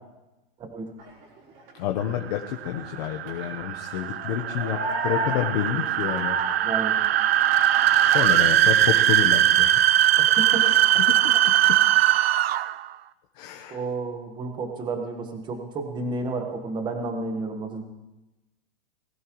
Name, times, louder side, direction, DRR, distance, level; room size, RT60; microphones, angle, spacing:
voice 1, 0.6-0.9 6.6-7.0 10.2-10.7 13.7-17.8, right 3 dB, 15° right, 4 dB, 1.4 m, -31 dB
sound 1, 1.0-1.8 2.3-6.5, right 1 dB, 30° right, 4.0 m, -33 dB
voice 2, 1.7-6.4 8.0-9.7 10.6-11.8 13.3-13.8, left 10 dB, 45° left, 3 dB, 1.0 m, -29 dB
sound 2, 2.2-12.9, right 12 dB, 90° right, 0.6 m, -21 dB
20.0 x 15.0 x 3.1 m, 1.0 s
supercardioid pair, 165°, 30 cm